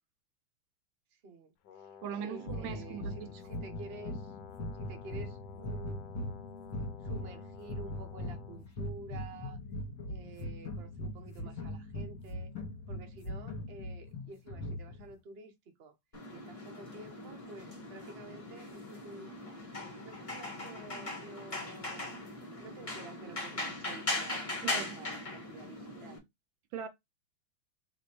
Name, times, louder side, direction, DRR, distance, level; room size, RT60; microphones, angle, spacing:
voice 1, 1.2-1.5 1.8-1.9 2.2-4.3 4.8-6.1 7.0-9.6 10.1-12.5 12.9-15.5 15.8-15.9 16.3-19.4 20.0-22.2 22.6-24.5 24.7-26.2, right 3 dB, 55° right, 0.7 m, -50 dB
Brass instrument, 1.6-8.7, left 7 dB, 70° left, 1.1 m, -53 dB
voice 2, 2.0-3.3 24.6-25.0 26.7-26.9, right 8 dB, 75° right, 1.2 m, -40 dB
sound 1, 2.5-15.1, left 1 dB, 45° left, 1.7 m, -41 dB
sound 2, 16.1-26.2, left 2 dB, 20° left, 1.0 m, -39 dB
3.4 x 3.3 x 4.2 m
omnidirectional pair, 2.4 m